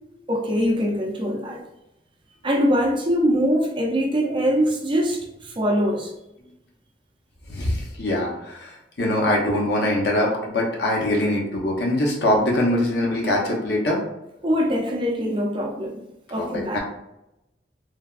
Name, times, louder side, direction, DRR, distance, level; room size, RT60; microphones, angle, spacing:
voice 1, 0.3-1.6 2.4-6.1 14.4-16.0 16.3-16.8, equal, 30° right, -1 dB, 0.5 m, -23 dB
voice 2, 7.5-14.0 16.4-16.8, left 1 dB, 70° left, -2 dB, 0.8 m, -23 dB
3.3 x 2.2 x 2.4 m, 0.87 s
head